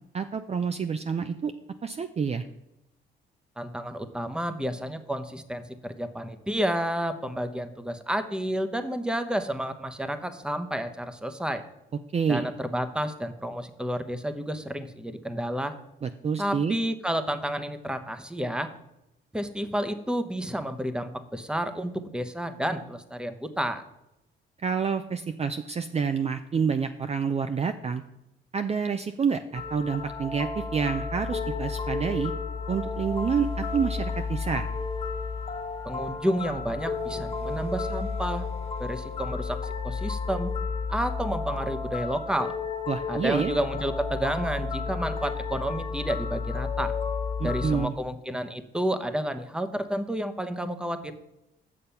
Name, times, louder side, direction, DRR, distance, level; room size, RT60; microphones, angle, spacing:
voice 1, 0.1-1.5 1.8-2.4 12.1-12.5 16.0-16.8 24.6-28.0 28.5-32.3 32.7-34.7 42.9-43.5 47.4-47.9, right 6 dB, 30° right, 8 dB, 0.5 m, -28 dB
voice 2, 3.6-11.6 12.3-15.7 16.4-18.7 19.3-23.8 35.8-38.5 38.8-40.5 40.9-42.5 43.1-46.9 47.4-51.1, equal, 5° right, 10 dB, 0.9 m, -30 dB
sound 1, 29.5-47.9, left 4 dB, 30° left, 1.3 m, -32 dB
8.7 x 6.7 x 5.7 m, 0.87 s
cardioid pair, 90°, 20 cm